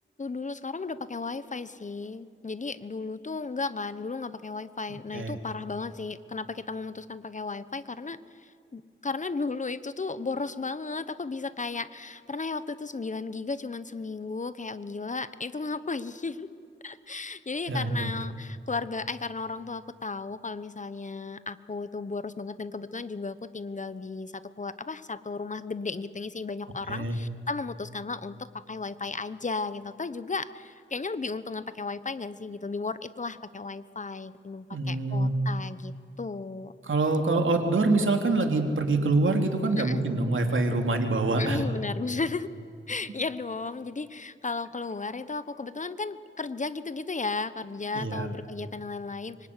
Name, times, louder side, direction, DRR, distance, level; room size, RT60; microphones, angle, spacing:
voice 1, 0.2-16.5 16.8-36.7 39.8-40.0 41.4-42.5 42.9-49.5, left 4 dB, 35° left, 14 dB, 1.0 m, -34 dB
voice 2, 17.7-18.1 26.9-27.2 34.7-35.3 36.8-41.6 47.9-48.3, right 2 dB, 75° right, 4 dB, 3.2 m, -25 dB
25.0 x 24.5 x 9.7 m, 2.4 s
wide cardioid pair, 100°, 20 cm